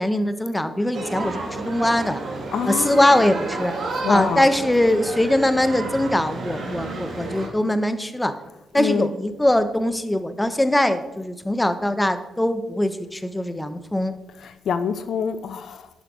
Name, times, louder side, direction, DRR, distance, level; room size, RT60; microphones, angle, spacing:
voice 1, 0.0-2.2 2.7-3.7 4.1-8.3 8.7-14.1, left 1 dB, 10° left, 1.1 m, -21 dB
sound 1, 0.9-7.5, right 3 dB, 60° right, 2.5 m, -31 dB
voice 2, 2.5-3.1 4.0-4.5 8.7-9.1 14.4-15.9, left 7 dB, 65° left, 0.5 m, -26 dB
10.5 x 5.8 x 6.3 m
hypercardioid pair, 50°, 0 cm